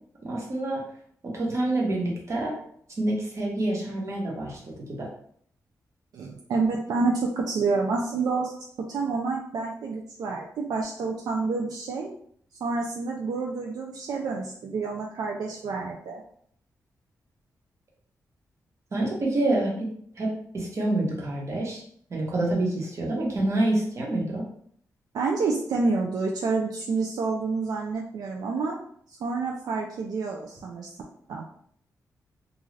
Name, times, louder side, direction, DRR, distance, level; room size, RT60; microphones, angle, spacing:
voice 1, 0.2-0.8 1.2-2.5 3.0-5.1 18.9-19.9 20.2-21.8 22.1-24.4, right 1 dB, 50° right, -3 dB, 1.0 m, -27 dB
voice 2, 6.1-8.5 8.9-12.1 12.6-16.2 25.1-28.8 29.2-30.9 31.3-31.4, right 4 dB, 80° right, -1 dB, 0.4 m, -28 dB
2.5 x 2.3 x 3.1 m, 0.62 s
cardioid pair, 100°, 7 cm